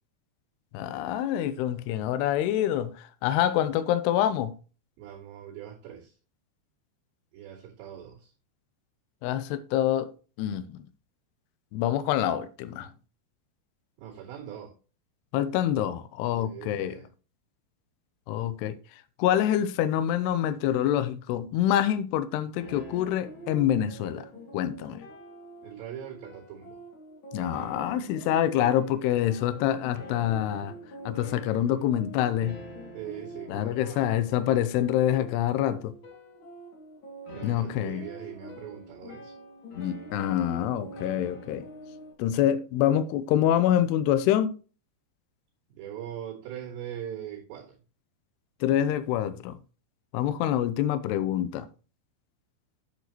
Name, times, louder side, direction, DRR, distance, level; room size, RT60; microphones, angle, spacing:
voice 1, 0.7-2.9 3.2-4.5 9.2-10.1 10.4-10.8 11.7-12.9 15.3-17.0 18.3-18.7 19.2-24.3 24.5-25.0 27.3-30.7 31.1-32.6 33.5-35.9 37.4-38.0 39.8-41.7 42.2-44.5 48.6-49.6 50.1-51.7, left 11 dB, 80° left, 2.7 m, -26 dB
voice 2, 5.0-6.2 7.3-8.3 14.0-14.7 16.3-17.1 25.6-26.8 32.9-34.2 34.6-34.8 37.3-39.4 45.7-47.8, right 10 dB, 85° right, 5.0 m, -41 dB
sound 1, 22.6-42.1, right 1 dB, 35° left, 2.3 m, -45 dB
9.2 x 8.0 x 3.0 m
omnidirectional pair, 4.9 m